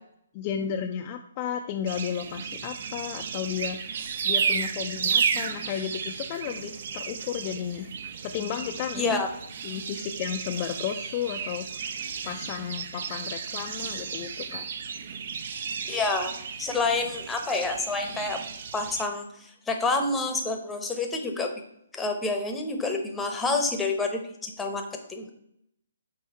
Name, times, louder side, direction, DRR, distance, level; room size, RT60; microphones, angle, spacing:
voice 1, 0.3-7.9 8.2-9.2 9.6-11.7 12.2-14.7, left 9 dB, 30° left, 3 dB, 0.4 m, -33 dB
sound 1, 1.9-19.0, right 6 dB, 50° right, 0.5 m, -33 dB
voice 2, 9.0-9.3 15.9-16.3 16.6-18.4 18.7-21.5 21.9-25.3, left 3 dB, 10° left, 4 dB, 0.8 m, -28 dB
5.5 x 4.6 x 4.3 m, 0.74 s
figure-of-eight pair, 140°, 0 cm